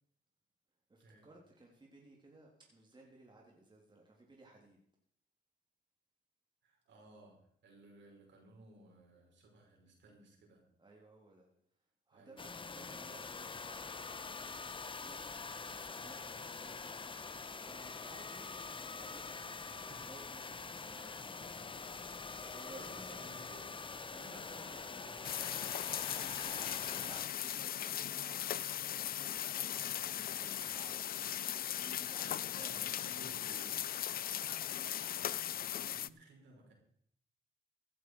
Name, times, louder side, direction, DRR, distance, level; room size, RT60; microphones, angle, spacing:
voice 1, 0.9-4.8 10.8-11.5 12.1-14.3 14.7-21.4 22.5-23.3 24.1-25.5 25.8-32.9, right 2 dB, 25° right, -1 dB, 3.3 m, -58 dB
voice 2, 6.6-7.4 7.6-10.6 12.1-12.6 19.4-20.2 20.9-21.6 22.9-23.7 24.2-25.5 26.6-26.9 32.2-33.8 34.8-36.7, right 2 dB, 65° right, 0 dB, 5.5 m, -60 dB
sound 1, 12.4-27.3, left 4 dB, 25° left, 0.9 m, -45 dB
sound 2, 25.2-36.1, left 11 dB, 50° left, 0.4 m, -38 dB
15.5 x 11.0 x 4.8 m, 0.67 s
cardioid pair, 90°, 20 cm